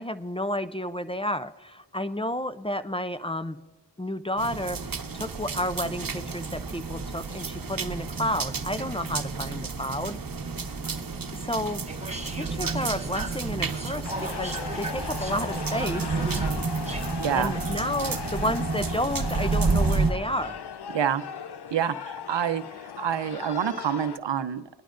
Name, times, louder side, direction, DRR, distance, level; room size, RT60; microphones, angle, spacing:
voice 1, 0.0-3.6 4.0-4.8 5.1-10.2 11.3-11.9 12.3-16.1 17.3-20.6, left 1 dB, 15° left, 11 dB, 0.5 m, -31 dB
sound 1, 4.4-20.1, right 4 dB, 55° right, 0.9 m, -30 dB
sound 2, 11.9-17.0, right 1 dB, 15° right, 1.5 m, -38 dB
sound 3, 14.0-24.2, left 8 dB, 65° left, 0.6 m, -38 dB
voice 2, 17.2-17.5 20.9-21.2 21.7-24.7, right 9 dB, 85° right, 12 dB, 0.6 m, -27 dB
21.5 x 11.5 x 2.5 m, 1.3 s
cardioid pair, 45°, 42 cm